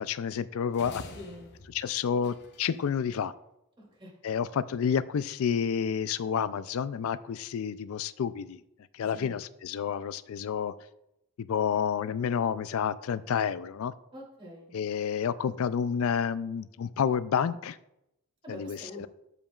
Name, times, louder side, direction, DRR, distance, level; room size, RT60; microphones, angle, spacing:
voice 1, 0.0-1.0 1.7-3.3 4.2-8.6 8.9-10.7 11.4-13.9 14.7-17.8 18.5-19.1, left 7 dB, 70° left, 16 dB, 0.3 m, -29 dB
sound 1, 0.7-3.0, left 2 dB, 50° left, 0.8 m, -47 dB
voice 2, 1.1-1.5 3.8-4.1 9.1-9.4 14.1-14.8 18.4-19.1, equal, 25° right, -3 dB, 2.6 m, -45 dB
12.0 x 5.1 x 2.4 m, 0.85 s
head